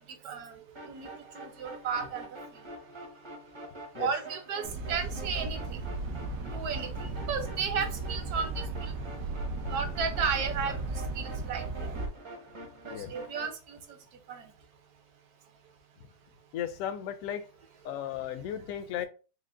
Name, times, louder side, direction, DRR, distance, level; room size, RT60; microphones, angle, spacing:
voice 1, 0.2-0.6 0.9-1.1 1.4-2.3 4.0-5.8 6.4-8.9 9.7-10.8 11.1-11.9 12.9-13.8 14.3-14.4, right 6 dB, 65° right, 1.2 m, -34 dB
sound 1, 0.7-13.5, right 2 dB, 30° right, 0.5 m, -46 dB
sound 2, 4.6-12.1, right 2 dB, 90° right, 1.4 m, -36 dB
voice 2, 16.5-17.5 17.8-19.1, left 10 dB, 70° left, 0.8 m, -35 dB
4.9 x 2.0 x 3.7 m
omnidirectional pair, 1.8 m